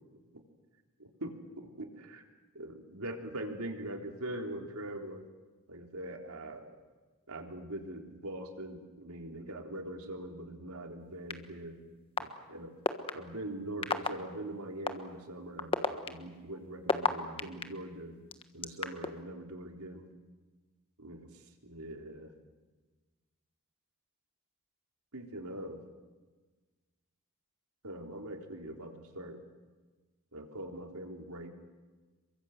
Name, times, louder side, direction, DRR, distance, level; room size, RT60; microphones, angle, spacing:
voice 1, 1.0-2.3 2.5-5.3 5.7-6.8 7.3-11.8 12.2-12.7 13.1-18.2 18.5-20.1 21.0-22.3 25.1-25.8 27.8-29.4 30.3-31.5, right 1 dB, 80° right, 3 dB, 3.6 m, -42 dB
sound 1, 11.3-11.4 12.2-12.3 12.8-13.1 13.8-14.1 14.9-15.0 15.6-17.6 18.3-19.1, left 3 dB, 25° left, 1.4 m, -28 dB
28.0 x 23.5 x 7.9 m, 1.3 s
head